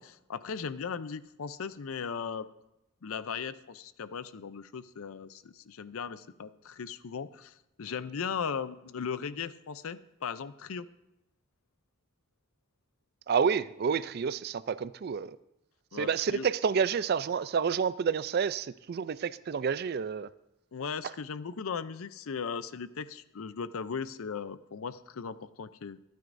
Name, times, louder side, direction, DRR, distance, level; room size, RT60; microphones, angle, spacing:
voice 1, 0.0-2.5 3.0-10.9 15.9-16.5 20.7-26.0, left 6 dB, 85° left, 14 dB, 0.5 m, -37 dB
voice 2, 13.3-15.4 15.9-20.3, right 6 dB, 50° right, 17 dB, 0.3 m, -29 dB
25.0 x 9.3 x 2.6 m, 0.87 s
head